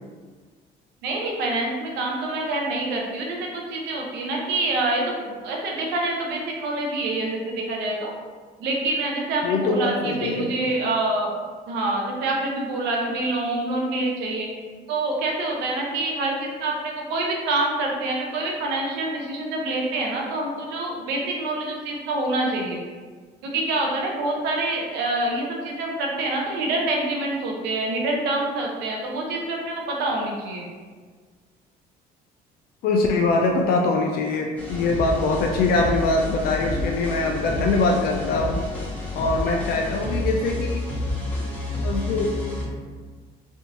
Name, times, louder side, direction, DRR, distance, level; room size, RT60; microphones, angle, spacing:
voice 1, 1.0-8.1 8.6-11.3 11.7-14.5 14.9-22.8 23.4-30.7, right 2 dB, 90° right, -1 dB, 0.7 m, -26 dB
voice 2, 9.4-10.5 32.8-38.6 39.1-40.8 41.8-42.3, left 3 dB, 65° left, 1 dB, 0.4 m, -23 dB
sound 1, 34.6-42.6, left 1 dB, 10° left, 0.9 m, -29 dB
3.4 x 2.5 x 2.9 m, 1.5 s
cardioid pair, 110°, 17 cm